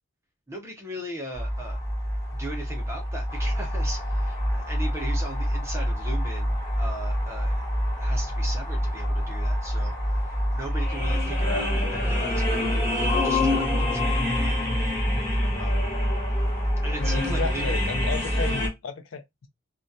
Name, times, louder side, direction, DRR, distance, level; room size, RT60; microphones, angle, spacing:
voice 1, 0.5-1.8 2.3-7.6 8.0-12.4 12.7-14.9 15.6-15.8 16.8-17.7, right 1 dB, 15° right, 0.6 m, -38 dB
sound 1, 1.3-18.7, left 1 dB, 25° left, 1.0 m, -26 dB
voice 2, 17.0-19.5, left 4 dB, 85° left, 0.5 m, -33 dB
2.2 x 2.2 x 2.6 m
head